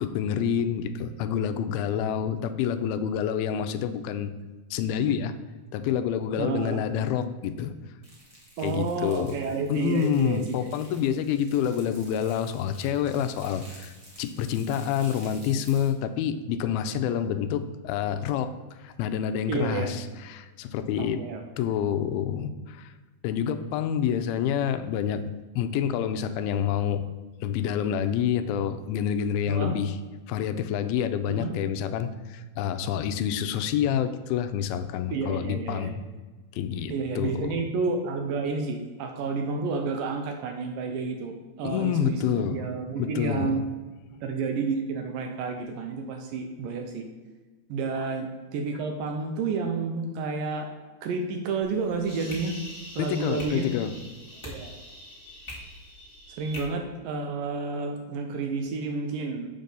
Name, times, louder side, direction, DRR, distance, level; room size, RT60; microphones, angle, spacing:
voice 1, 0.0-4.3 4.7-5.3 5.7-7.7 8.6-9.4 9.7-18.5 18.8-21.2 21.6-22.9 23.2-25.3 25.6-27.1 27.4-29.9 30.3-36.0 36.5-37.6 41.6-42.6 43.0-43.5 53.0-53.9, left 9 dB, 80° left, 10 dB, 2.4 m, -28 dB
voice 2, 6.4-6.9 8.6-10.7 19.5-20.0 21.0-21.4 29.5-29.8 31.3-31.5 35.1-35.9 36.9-43.6 44.2-47.1 47.7-50.7 51.0-52.6 52.9-53.7 54.4-54.7 56.4-59.5, right 4 dB, 80° right, 4 dB, 2.1 m, -30 dB
sound 1, 8.0-15.9, equal, 60° right, 0.3 m, -51 dB
sound 2, 51.6-56.6, left 1 dB, 35° left, 0.4 m, -43 dB
7.3 x 3.9 x 6.7 m, 1.2 s
omnidirectional pair, 4.5 m